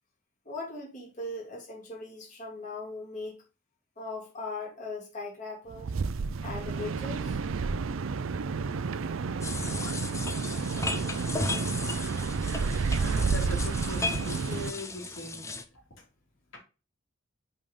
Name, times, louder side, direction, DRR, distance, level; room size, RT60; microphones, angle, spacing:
voice 1, 0.4-3.4 4.0-5.9 6.4-7.4, left 2 dB, 40° left, -4 dB, 2.7 m, -39 dB
sound 1, 5.7-14.7, right 4 dB, 85° right, 0.5 m, -30 dB
sound 2, 9.4-15.6, left 2 dB, 15° left, 0.8 m, -35 dB
voice 2, 12.7-15.5 15.7-16.0, left 1 dB, 75° left, -1 dB, 3.2 m, -41 dB
5.4 x 5.3 x 5.2 m, 0.32 s
head